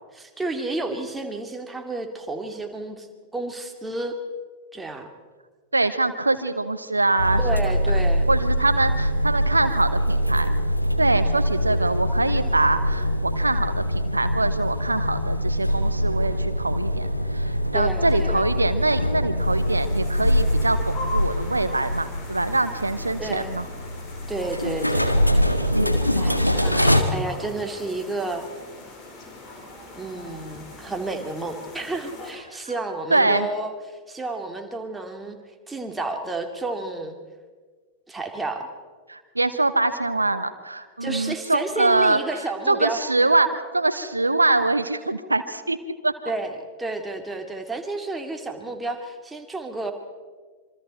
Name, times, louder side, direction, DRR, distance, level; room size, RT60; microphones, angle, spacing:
voice 1, 0.1-3.1 3.3-4.2 4.7-5.1 7.4-8.3 17.7-18.5 23.2-23.5 24.3-25.1 26.1-28.5 30.0-35.4 35.7-37.1 38.1-38.7 41.0-43.0 46.3-46.5 46.8-49.9, right 2 dB, 10° right, 4 dB, 2.7 m, -31 dB
voice 2, 5.7-7.9 8.3-10.5 11.0-23.7 33.1-33.5 39.1-42.2 42.7-43.5 43.7-45.8 46.0-46.1, right 2 dB, 80° right, 11 dB, 1.0 m, -24 dB
sound 1, 7.2-27.0, equal, 90° left, 1.6 m, -23 dB
sound 2, 19.4-32.3, left 2 dB, 35° left, 5.2 m, -41 dB
26.5 x 24.5 x 4.5 m, 1.5 s
figure-of-eight pair, 90°, 0 cm